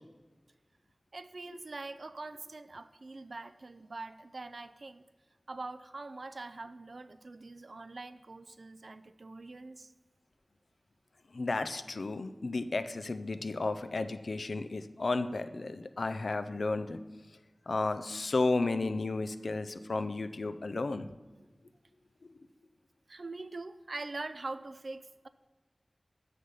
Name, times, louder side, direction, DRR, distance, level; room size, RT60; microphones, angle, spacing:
voice 1, 1.1-5.0 5.5-9.9 23.1-25.3, right 3 dB, 75° right, 12 dB, 0.4 m, -43 dB
voice 2, 11.3-17.0 17.7-21.1, left 3 dB, 90° left, 11 dB, 0.4 m, -33 dB
6.7 x 6.5 x 5.5 m, 1.2 s
wide cardioid pair, 45°, 0 cm